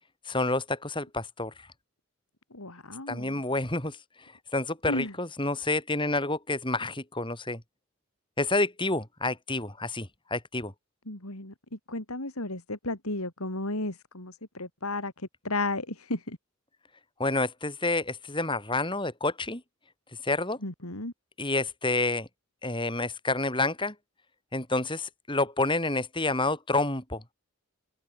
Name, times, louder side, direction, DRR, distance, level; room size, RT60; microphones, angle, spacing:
voice 1, 0.3-1.5 3.1-4.0 4.5-7.6 8.4-10.7 17.2-19.6 20.2-20.6 21.4-22.3 22.6-23.9 24.5-27.2, left 2 dB, 20° left, 5.7 m, -29 dB
voice 2, 2.5-3.4 4.9-5.1 11.1-11.5 11.9-16.4 20.6-21.1, left 2 dB, 80° left, 4.7 m, -33 dB
head